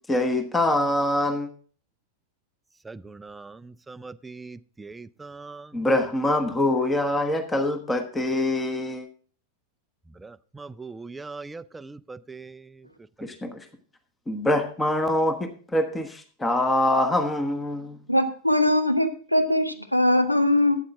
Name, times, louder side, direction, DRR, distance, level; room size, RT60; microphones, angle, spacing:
voice 1, 0.1-1.5 5.7-9.1 13.2-13.6 14.3-18.0, left 1 dB, 10° left, 7 dB, 1.2 m, -24 dB
voice 2, 2.8-5.9 10.2-12.9, right 4 dB, 10° right, 16 dB, 0.4 m, -41 dB
voice 3, 18.1-20.8, left 1 dB, 90° left, 9 dB, 1.1 m, -21 dB
13.0 x 9.0 x 3.6 m, 0.41 s
figure-of-eight pair, 90°, 0 cm